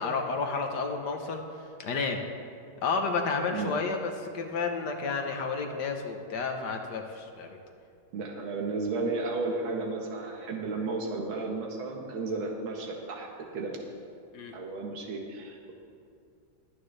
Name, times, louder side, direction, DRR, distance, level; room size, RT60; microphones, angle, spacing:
voice 1, 0.0-2.2 2.8-7.6 14.3-14.6, left 4 dB, 60° left, 4 dB, 1.5 m, -31 dB
voice 2, 8.1-13.8 14.5-15.7, right 3 dB, 80° right, 0 dB, 2.0 m, -33 dB
21.5 x 9.3 x 3.3 m, 2.4 s
omnidirectional pair, 2.1 m